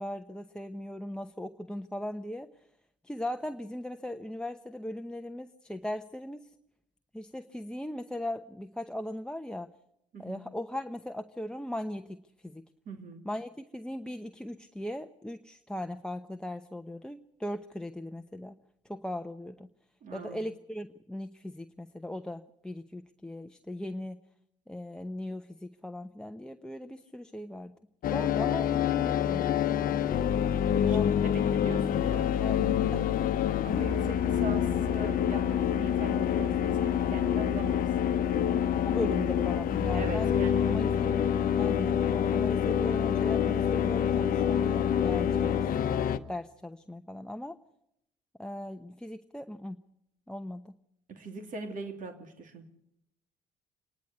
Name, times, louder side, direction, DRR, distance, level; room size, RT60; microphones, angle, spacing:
voice 1, 0.0-2.5 3.0-6.5 7.1-9.7 10.2-12.2 12.4-12.6 13.2-18.6 18.8-19.7 20.1-24.2 24.7-27.7 28.1-28.8 30.8-31.2 32.4-33.1 38.8-40.3 40.7-47.6 48.4-49.8 50.3-50.7, left 1 dB, 5° left, 0.9 m, -38 dB
voice 2, 12.9-13.3 20.0-20.4 30.7-32.4 33.6-38.7 39.9-41.2 51.1-52.7, right 3 dB, 55° right, 2.8 m, -41 dB
sound 1, 28.0-46.2, left 9 dB, 60° left, 0.9 m, -27 dB
26.0 x 10.5 x 9.4 m
hypercardioid pair, 55°, 16 cm